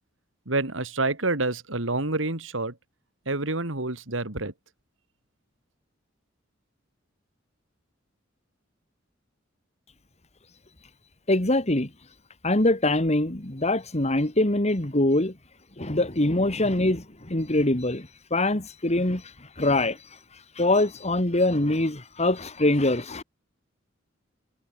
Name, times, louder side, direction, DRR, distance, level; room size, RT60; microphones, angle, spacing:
voice 1, 0.5-2.7 3.3-4.5, right 2 dB, 80° right, 2.9 m, -28 dB
voice 2, 11.3-11.9 12.4-15.3 15.8-23.2, left 2 dB, 35° left, 2.5 m, -24 dB
head